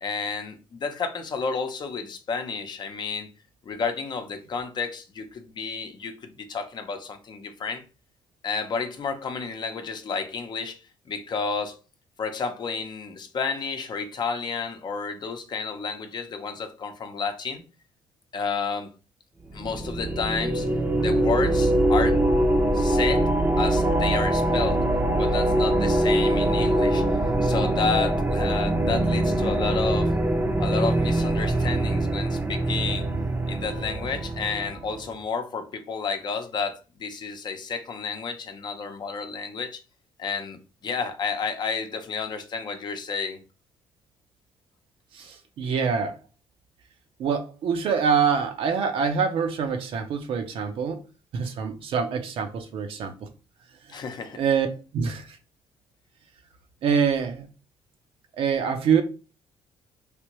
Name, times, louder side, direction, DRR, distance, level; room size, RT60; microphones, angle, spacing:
voice 1, 0.0-3.3 3.7-7.8 8.4-10.8 11.1-11.8 12.2-17.6 18.3-18.9 19.5-20.7 21.0-22.2 22.7-23.3 23.6-24.8 25.1-27.0 27.4-30.1 30.6-33.1 33.5-39.8 40.2-43.4 53.9-54.4, left 5 dB, 50° left, 0.7 m, -31 dB
sound 1, 19.5-34.9, right 1 dB, 20° right, 0.6 m, -23 dB
voice 2, 45.1-46.2 47.2-51.0 51.3-53.3 54.4-54.7 54.9-55.4 56.8-57.5 58.4-59.0, right 6 dB, 65° right, 0.6 m, -25 dB
3.3 x 2.6 x 3.0 m
cardioid pair, 95°, 10 cm